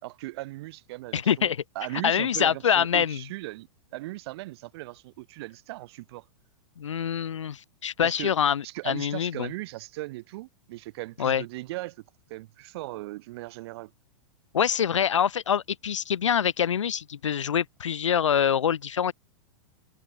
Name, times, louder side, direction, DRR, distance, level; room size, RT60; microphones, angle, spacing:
voice 1, 0.0-6.2 8.0-8.3 8.6-12.0 12.3-13.9, right 19 dB, 60° right, 4.3 m, -38 dB
voice 2, 1.1-1.6 2.0-3.2 6.8-9.5 11.2-11.4 14.5-19.1, left 8 dB, 90° left, 1.2 m, -25 dB
hypercardioid pair, 120°, 15 cm